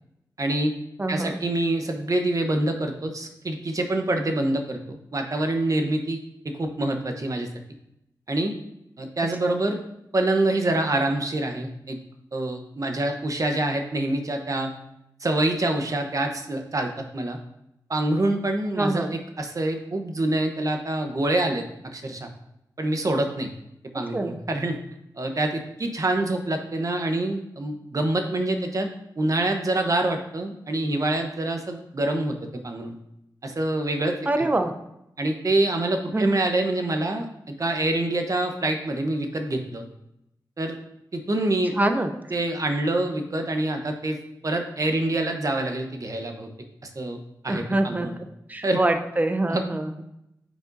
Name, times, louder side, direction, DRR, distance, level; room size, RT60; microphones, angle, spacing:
voice 1, 0.4-0.7 1.1-6.2 6.4-7.5 8.3-8.5 9.0-9.8 10.1-12.0 12.3-14.7 15.2-17.4 17.9-19.1 19.4-21.6 21.9-22.3 22.8-23.5 23.9-24.8 25.2-28.9 29.2-32.9 33.4-34.5 35.2-39.8 40.6-40.8 41.1-41.7 42.3-44.2 44.4-46.5 46.8-47.2 47.4-48.1 48.6-48.8 49.5-49.6, right 2 dB, 45° right, 4 dB, 0.9 m, -26 dB
voice 2, 1.0-1.4 9.4-9.6 18.8-19.2 23.9-24.4 34.3-34.7 36.1-36.3 41.8-42.1 47.5-48.1 48.5-49.9, right 2 dB, 20° right, 6 dB, 0.6 m, -25 dB
9.0 x 5.0 x 2.7 m, 0.82 s
cardioid pair, 65°, 8 cm